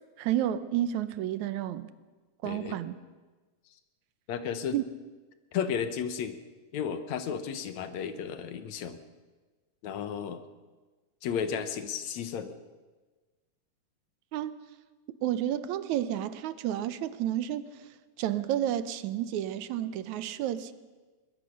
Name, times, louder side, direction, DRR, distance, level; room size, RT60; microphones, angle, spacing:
voice 1, 0.2-1.9 2.4-2.9 4.7-4.8 14.3-14.6 15.2-17.7 18.2-20.7, right 11 dB, 80° right, 2.2 m, -31 dB
voice 2, 2.4-2.8 4.3-4.8 5.5-6.4 6.7-9.0 9.8-10.4 11.2-12.6, left 7 dB, 70° left, 2.3 m, -33 dB
21.5 x 21.5 x 6.5 m
omnidirectional pair, 3.4 m